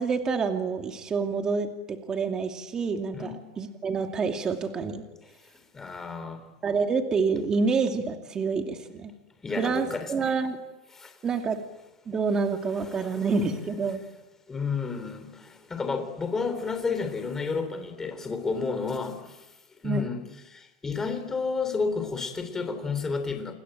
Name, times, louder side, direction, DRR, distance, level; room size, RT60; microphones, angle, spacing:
voice 1, 0.0-5.0 6.6-9.1 9.6-10.6 11.2-11.6 12.1-14.0 19.8-20.1, right 4 dB, 25° right, 2.5 m, -27 dB
voice 2, 5.7-6.4 9.4-10.3 10.9-11.2 12.8-13.3 14.5-19.5 19.8-20.2 20.5-23.5, left 4 dB, 15° left, 3.5 m, -31 dB
28.5 x 21.0 x 9.0 m
supercardioid pair, 140°, 3 cm